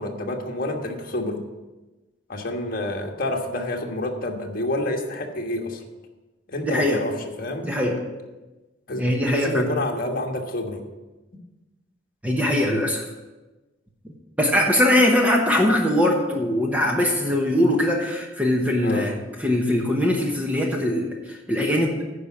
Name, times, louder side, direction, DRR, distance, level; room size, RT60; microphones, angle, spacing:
voice 1, 0.0-1.4 2.3-5.8 6.5-7.7 8.9-10.8 18.8-19.1, left 1 dB, 50° left, 2 dB, 1.3 m, -28 dB
voice 2, 6.6-7.0 7.6-8.0 9.0-9.7 12.2-13.1 14.4-22.0, left 1 dB, 10° right, 0 dB, 1.0 m, -21 dB
10.5 x 5.0 x 7.1 m, 1.1 s
head